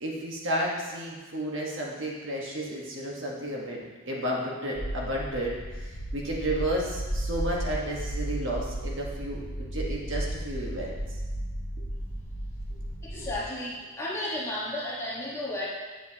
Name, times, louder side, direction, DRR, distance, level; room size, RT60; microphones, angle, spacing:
voice 1, 0.0-11.0 11.8-11.9 13.1-13.3, right 1 dB, 55° right, -3 dB, 1.4 m, -32 dB
sound 1, 4.7-13.4, right 1 dB, 30° left, 2.1 m, -34 dB
voice 2, 13.0-15.7, left 1 dB, 15° left, -7 dB, 1.4 m, -33 dB
8.9 x 7.4 x 2.9 m, 1.3 s
head